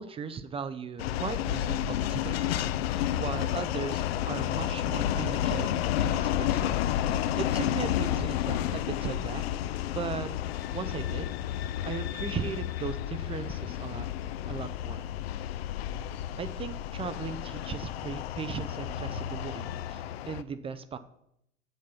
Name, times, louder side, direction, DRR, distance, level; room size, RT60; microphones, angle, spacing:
voice 1, 0.0-5.7 6.0-9.4 9.9-10.3 10.7-14.1 14.4-15.0 16.4-21.0, right 6 dB, 15° right, 12 dB, 0.4 m, -38 dB
sound 1, 1.0-20.4, left 12 dB, 55° left, 0.6 m, -31 dB
8.0 x 7.3 x 5.6 m, 0.77 s
figure-of-eight pair, 80°, 37 cm